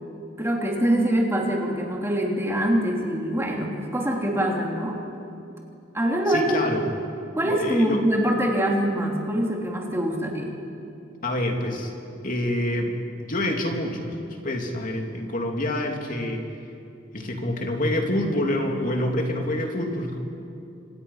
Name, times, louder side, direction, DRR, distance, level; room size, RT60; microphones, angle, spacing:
voice 1, 0.4-5.0 5.9-6.6 7.3-10.5, right 1 dB, 15° right, -1 dB, 3.3 m, -24 dB
voice 2, 6.3-6.9 7.4-8.0 11.2-11.9 12.2-16.4 17.1-20.2, left 1 dB, 45° left, 2 dB, 2.9 m, -27 dB
30.0 x 26.0 x 5.8 m, 2.6 s
head